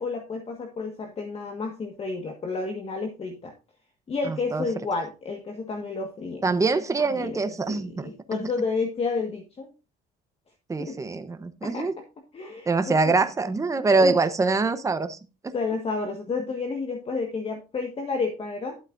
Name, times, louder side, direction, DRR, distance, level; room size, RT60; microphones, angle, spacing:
voice 1, 0.0-3.5 4.1-6.4 7.0-7.4 7.7-9.7 10.8-11.0 11.6-11.9 12.3-13.2 14.0-14.2 15.5-18.8, left 4 dB, 35° left, 3 dB, 1.6 m, -31 dB
voice 2, 4.3-4.6 6.4-8.1 8.4-8.5 10.7-11.9 12.7-15.2 15.4-15.5, right 3 dB, 20° right, 9 dB, 0.9 m, -24 dB
12.0 x 8.1 x 2.6 m, 0.30 s
cardioid pair, 110°, 17 cm